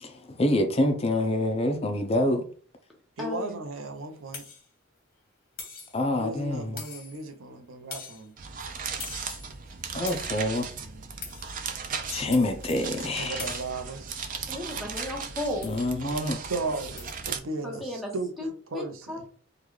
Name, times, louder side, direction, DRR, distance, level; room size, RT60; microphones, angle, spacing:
voice 1, 0.4-2.4 5.9-6.7 9.9-10.7 12.1-13.4 15.6-16.4, left 1 dB, 30° left, 0.4 m, -26 dB
voice 2, 3.2-4.4 6.2-8.3 10.8-11.0 13.1-14.2 16.0-19.2, right 2 dB, 90° right, 0.6 m, -35 dB
sound 1, 4.3-4.7 5.6-6.0 6.8-7.3 7.9-8.3 9.0-9.5 10.1-10.5 11.2-11.6 12.3-12.9 13.4-13.8 15.0-15.3 15.6-15.9 17.0-17.2, left 5 dB, 45° left, 1.2 m, -42 dB
sound 2, 8.4-17.4, right 6 dB, 40° right, 0.4 m, -37 dB
voice 3, 14.5-15.7 17.6-18.1 18.4-19.3, left 1 dB, ahead, 0.8 m, -34 dB
3.7 x 2.3 x 3.1 m
head